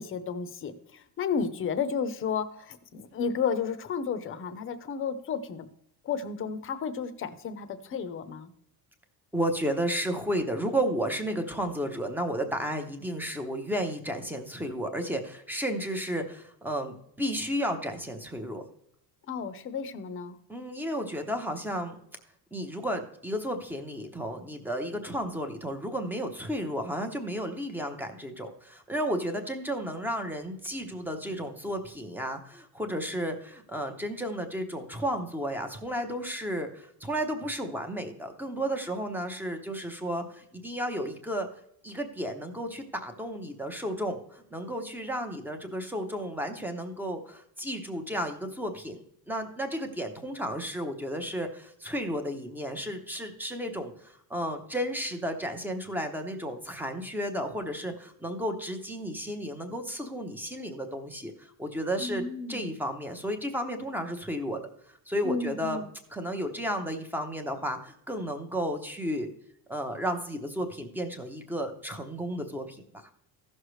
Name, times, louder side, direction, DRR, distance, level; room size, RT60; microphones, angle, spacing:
voice 1, 0.0-5.7 6.0-8.5 19.3-20.4 62.0-62.7 65.2-65.9, left 6 dB, 35° left, 12 dB, 0.7 m, -32 dB
voice 2, 9.3-18.6 20.5-22.0 22.5-41.5 41.8-64.6 65.1-65.8 66.1-69.3 69.7-72.8, equal, 5° right, 4 dB, 0.7 m, -33 dB
15.5 x 6.4 x 3.1 m, 0.71 s
cardioid pair, 175°, 39 cm